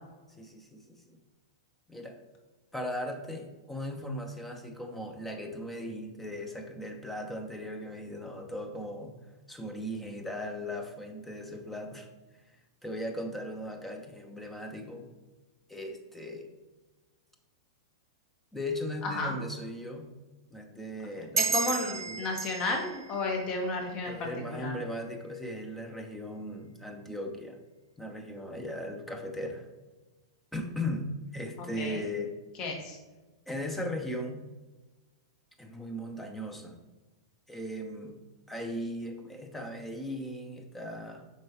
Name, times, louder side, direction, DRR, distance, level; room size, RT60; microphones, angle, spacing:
voice 1, 0.4-1.2 1.9-2.2 2.7-9.2 9.5-12.1 12.5-15.1 15.7-16.5 18.5-20.1 20.5-21.5 21.9-22.3 24.0-27.6 28.0-29.7 30.5-32.3 33.5-34.5 35.6-36.8 37.5-38.2 38.5-41.3, left 1 dB, 5° left, 4 dB, 0.9 m, -38 dB
voice 2, 19.0-19.3 21.2-24.7 31.8-32.0 32.6-33.0, left 3 dB, 35° left, 1 dB, 1.7 m, -33 dB
sound 1, 21.4-24.5, right 6 dB, 75° right, 0.3 m, -34 dB
7.5 x 5.5 x 3.0 m, 1.2 s
figure-of-eight pair, 100°, 2 cm